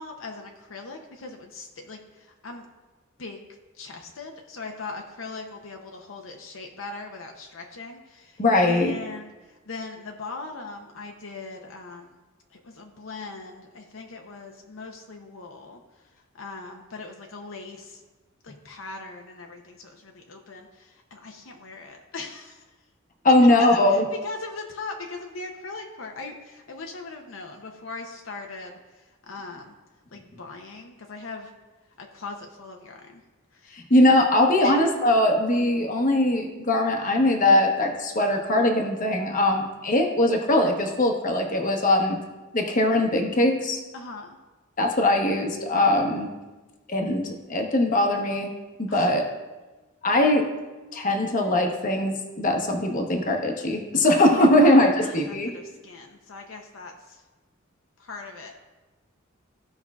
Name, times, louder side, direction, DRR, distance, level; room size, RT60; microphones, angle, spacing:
voice 1, 0.0-2.7 3.2-3.5 3.8-12.2 12.5-15.8 16.3-18.0 18.4-22.6 23.3-29.7 30.1-31.5 32.0-33.2 33.5-33.8 34.6-34.8 39.3-39.5 43.9-44.4 48.9-49.2 54.3-57.2 58.0-58.6, left 3 dB, 70° left, 2 dB, 0.7 m, -40 dB
voice 2, 8.4-8.9 23.2-24.0 33.7-42.2 42.5-43.8 44.8-46.3 46.9-48.5 48.8-49.2 50.0-50.5 50.9-55.5, left 1 dB, 40° left, 2 dB, 1.0 m, -21 dB
15.5 x 5.4 x 2.4 m, 1.2 s
head